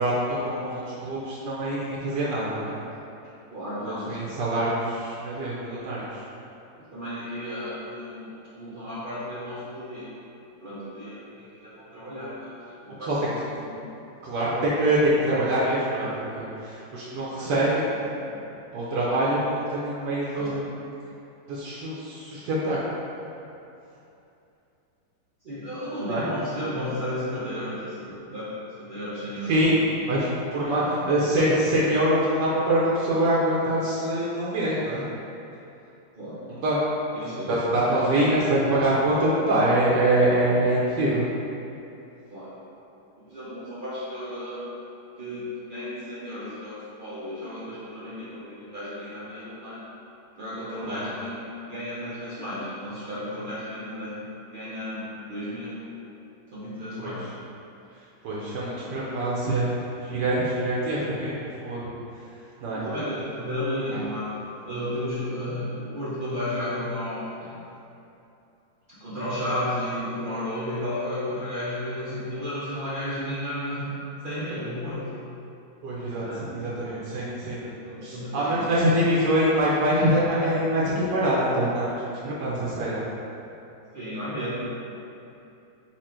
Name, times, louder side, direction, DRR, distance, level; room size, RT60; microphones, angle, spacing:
voice 1, 0.0-2.7 3.8-6.1 13.1-13.2 14.2-17.9 18.7-20.6 21.5-22.8 26.1-26.2 29.5-35.0 36.5-36.8 37.5-41.3 50.8-51.0 57.0-57.1 58.2-59.7 60.0-61.9 62.6-62.8 63.9-64.0 75.8-77.6 78.0-82.0 82.2-83.0, right 1 dB, 75° right, -7 dB, 1.3 m, -24 dB
voice 2, 3.5-4.4 6.9-10.1 10.6-13.1 13.7-13.8 17.4-17.5 18.2-18.4 20.3-20.7 25.4-28.0 28.3-29.5 30.6-31.0 36.1-36.7 37.1-37.5 37.9-38.3 42.3-42.5 43.2-44.7 45.2-49.8 50.4-51.4 51.7-54.3 54.5-55.8 56.5-57.3 62.1-62.2 62.7-64.4 64.6-67.5 68.9-73.9 74.2-75.2 76.2-76.5 76.9-77.0 77.6-78.7 83.9-84.7, left 1 dB, 55° right, -10 dB, 0.5 m, -33 dB
4.3 x 2.5 x 4.3 m, 2.8 s
omnidirectional pair, 1.9 m